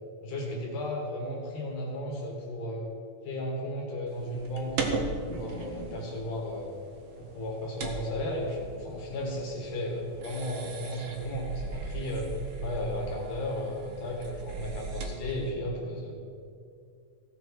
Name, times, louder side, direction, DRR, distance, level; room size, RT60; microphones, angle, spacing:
voice 1, 0.2-2.9 3.2-5.0 5.3-6.7 7.2-12.3 12.6-16.2, left 1 dB, 75° left, -2 dB, 3.1 m, -34 dB
sound 1, 4.1-15.5, right 3 dB, 80° right, 1.1 m, -38 dB
16.5 x 6.4 x 4.7 m, 2.4 s
omnidirectional pair, 3.8 m